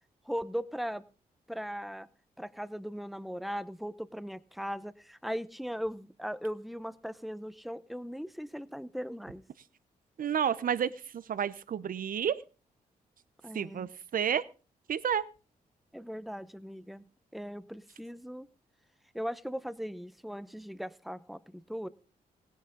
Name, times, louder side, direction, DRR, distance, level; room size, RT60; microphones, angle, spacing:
voice 1, 0.3-1.0 1.5-2.1 2.4-9.4 13.4-13.9 15.9-17.0 17.3-18.5 19.1-21.9, equal, ahead, 14 dB, 0.9 m, -38 dB
voice 2, 10.2-12.4 13.5-14.4 14.9-15.3, right 8 dB, 65° right, 16 dB, 0.9 m, -30 dB
17.0 x 10.5 x 3.9 m, 0.34 s
cardioid pair, 60°, 16 cm